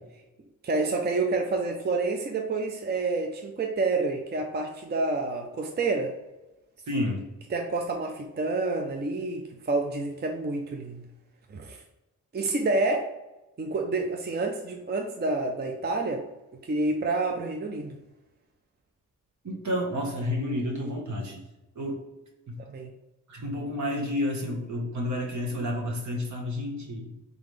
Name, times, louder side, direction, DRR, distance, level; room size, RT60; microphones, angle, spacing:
voice 1, 0.6-6.1 7.5-11.1 11.5-11.8 12.3-13.1 13.6-16.2 16.6-18.0 22.7-22.9, right 3 dB, 30° right, 2 dB, 0.5 m, -28 dB
voice 2, 6.9-7.2 19.4-21.4 21.7-22.0 22.5-22.6 23.3-27.1, left 1 dB, 65° right, 0 dB, 1.3 m, -30 dB
4.0 x 3.9 x 3.3 m, 1.0 s
cardioid pair, 90°, 32 cm